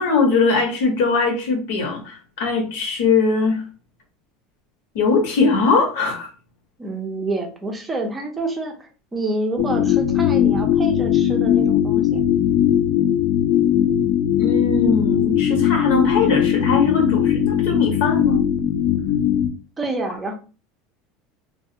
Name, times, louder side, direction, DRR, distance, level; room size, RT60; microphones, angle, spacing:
voice 1, 0.0-3.6 4.9-6.3 14.4-18.4, left 4 dB, 85° left, 2 dB, 1.0 m, -20 dB
voice 2, 6.8-12.2 19.8-20.3, right 2 dB, 15° right, 2 dB, 0.5 m, -28 dB
sound 1, 9.6-19.5, left 10 dB, 60° left, 0.4 m, -19 dB
2.4 x 2.3 x 2.7 m, 0.35 s
supercardioid pair, 150°, 0 cm